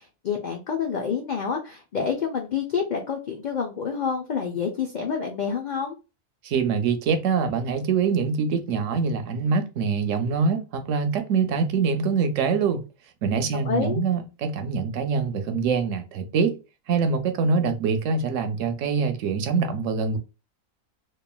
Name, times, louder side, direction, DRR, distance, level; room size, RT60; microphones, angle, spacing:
voice 1, 0.0-6.0 13.6-14.0, left 6 dB, 75° left, 0.4 m, -28 dB
voice 2, 6.4-12.8 13.2-16.6 16.9-20.2, right 5 dB, 75° right, 0.9 m, -24 dB
3.0 x 2.4 x 2.2 m
omnidirectional pair, 1.4 m